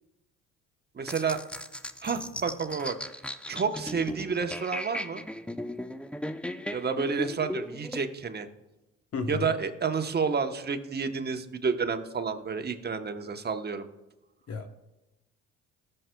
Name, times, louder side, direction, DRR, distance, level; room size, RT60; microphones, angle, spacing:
voice 1, 0.9-1.4 2.0-3.0 3.5-5.2 6.7-8.5 9.3-13.9, right 5 dB, 30° right, 7 dB, 1.0 m, -30 dB
sound 1, 1.1-8.0, equal, 5° left, 0.5 m, -37 dB
voice 2, 9.1-9.5 14.5-14.7, left 5 dB, 45° left, 7 dB, 1.0 m, -32 dB
19.0 x 6.6 x 2.3 m, 0.99 s
hypercardioid pair, 60°, 35 cm